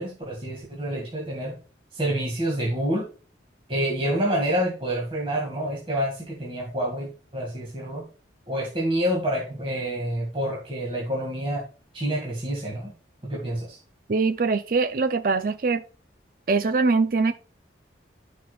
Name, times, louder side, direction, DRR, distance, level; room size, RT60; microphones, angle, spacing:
voice 1, 0.0-1.6 1.9-3.1 3.7-8.0 8.5-11.6 11.9-12.9 13.2-13.8, right 1 dB, 30° right, 2.0 m, -28 dB
voice 2, 14.1-15.8 16.5-17.3, right 4 dB, 45° right, 0.4 m, -22 dB
15.0 x 5.1 x 2.3 m
head